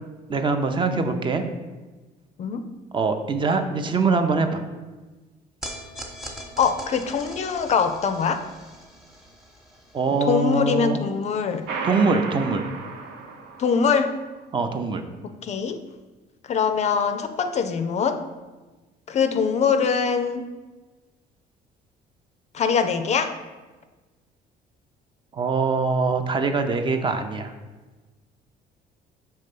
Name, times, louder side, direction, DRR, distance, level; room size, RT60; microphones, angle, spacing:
voice 1, 0.3-1.4 2.9-4.6 9.9-11.0 11.8-12.6 14.5-15.0 25.3-27.5, right 4 dB, 30° right, 7 dB, 0.6 m, -23 dB
sound 1, 5.6-12.0, equal, 5° right, 1.0 m, -42 dB
voice 2, 6.6-8.4 10.3-11.7 13.6-14.2 15.2-15.8 16.4-18.2 19.1-20.5 22.5-23.3, left 6 dB, 40° left, 8 dB, 0.4 m, -23 dB
sound 2, 11.7-14.1, right 4 dB, 85° right, 0.8 m, -33 dB
5.4 x 3.4 x 5.3 m, 1.2 s
cardioid pair, 110°, 17 cm